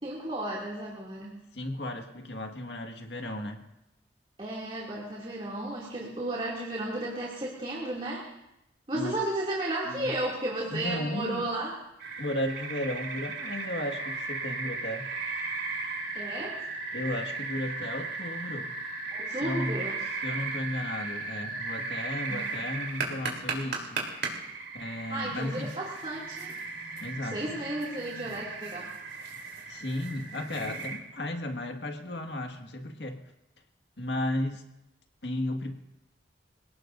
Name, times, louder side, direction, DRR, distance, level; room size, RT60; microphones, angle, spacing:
voice 1, 0.0-1.4 4.4-8.3 8.9-11.8 16.1-16.6 19.1-19.9 22.3-22.6 25.1-26.5 27.2-28.9, right 1 dB, 30° right, -4 dB, 2.7 m, -33 dB
voice 2, 1.5-3.6 8.9-9.2 9.8-10.1 10.7-11.4 12.2-15.1 16.9-18.7 19.3-19.8 20.2-24.0 24.7-25.7 27.0-27.6 29.7-33.2 34.0-34.6 35.2-35.7, left 1 dB, 70° left, 4 dB, 1.9 m, -34 dB
sound 1, 12.0-31.0, right 3 dB, 70° right, 3.6 m, -36 dB
27.5 x 18.0 x 2.7 m, 0.88 s
head